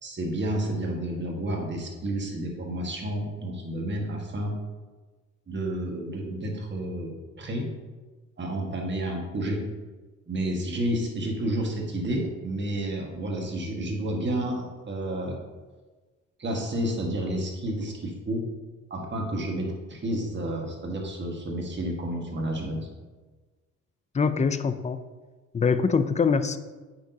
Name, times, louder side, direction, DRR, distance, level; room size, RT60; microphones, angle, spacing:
voice 1, 0.0-4.6 5.5-7.1 7.4-7.7 8.4-9.6 10.3-15.3 16.4-18.5 18.9-22.9, right 1 dB, 40° right, 0 dB, 1.7 m, -30 dB
voice 2, 24.1-25.0 25.5-26.6, left 5 dB, 25° left, 11 dB, 0.4 m, -23 dB
8.6 x 6.0 x 2.8 m, 1.3 s
cardioid pair, 90°, 30 cm